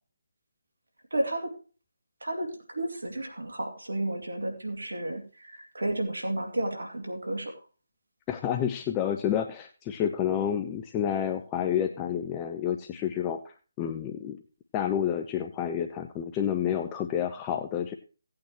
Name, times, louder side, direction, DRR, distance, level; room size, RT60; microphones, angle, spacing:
voice 1, 1.1-1.5 2.2-7.5, right 1 dB, 75° right, 4 dB, 2.4 m, -32 dB
voice 2, 8.3-14.4 14.7-17.9, left 9 dB, 15° left, 5 dB, 0.7 m, -29 dB
17.0 x 8.7 x 3.0 m, 0.36 s
figure-of-eight pair, 150°, 0 cm